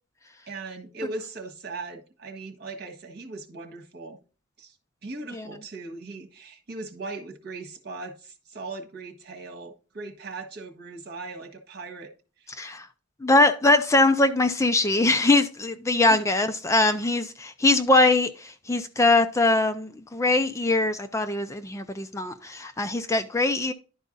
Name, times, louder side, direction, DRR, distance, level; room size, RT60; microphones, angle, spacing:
voice 1, 0.5-4.2 4.6-4.7 5.0-12.1 12.4-12.5 16.1-16.2, right 3 dB, 55° right, 1.5 m, -39 dB
voice 2, 13.2-23.7, left 2 dB, 15° left, 0.4 m, -22 dB
11.0 x 4.6 x 4.0 m
head